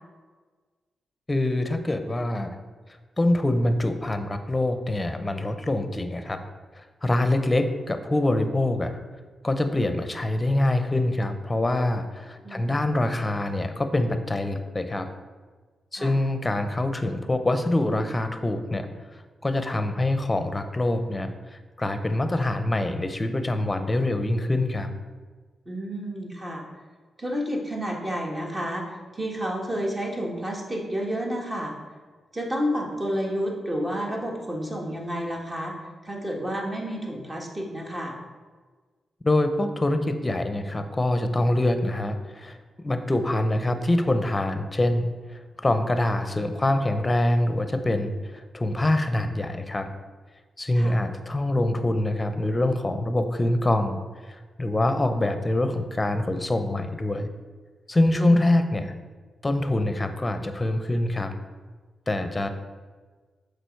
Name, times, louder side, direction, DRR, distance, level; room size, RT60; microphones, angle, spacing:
voice 1, 1.3-2.6 3.2-6.4 6.8-9.0 9.4-15.1 15.9-18.9 19.4-24.9 39.2-49.9 50.6-54.0 54.3-57.3 57.9-58.9 59.4-61.3 62.1-62.5, left 1 dB, 25° left, 8 dB, 0.7 m, -25 dB
voice 2, 12.4-12.8 15.9-16.1 25.6-26.6 27.2-31.7 32.3-35.7 36.0-38.1 50.7-51.0 58.1-58.5, equal, 25° right, 0 dB, 1.6 m, -30 dB
6.7 x 4.9 x 4.6 m, 1.4 s
cardioid pair, 65°, 0 cm